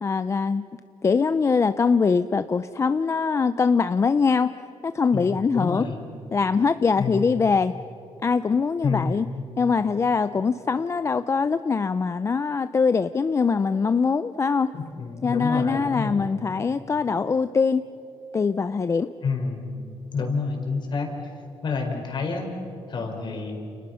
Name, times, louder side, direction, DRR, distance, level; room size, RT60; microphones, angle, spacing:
voice 1, 0.0-0.7 1.0-4.6 4.8-5.8 6.3-7.8 8.2-9.3 9.6-14.7 15.2-17.9 18.3-19.1, left 5 dB, 30° left, 12 dB, 0.5 m, -22 dB
voice 2, 5.1-6.0 7.0-7.3 8.8-9.3 14.7-16.3 19.2-19.7 20.1-21.1 21.6-22.5 22.9-23.6, left 4 dB, 50° left, 3 dB, 4.5 m, -29 dB
29.5 x 29.5 x 5.7 m, 3.0 s
cardioid pair, 130°, 10 cm